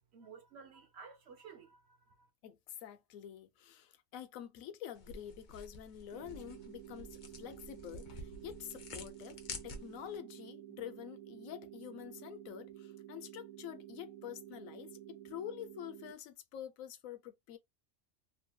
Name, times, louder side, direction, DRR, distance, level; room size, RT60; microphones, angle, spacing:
voice 1, 0.1-2.3, right 5 dB, 60° right, 0.9 m, -54 dB
voice 2, 2.4-9.4 9.6-17.6, left 11 dB, 90° left, 1.0 m, -47 dB
sound 1, 5.0-10.2, left 3 dB, 50° left, 0.6 m, -49 dB
sound 2, 6.1-16.1, right 13 dB, 90° right, 1.3 m, -51 dB
2.9 x 2.6 x 2.2 m
omnidirectional pair, 1.4 m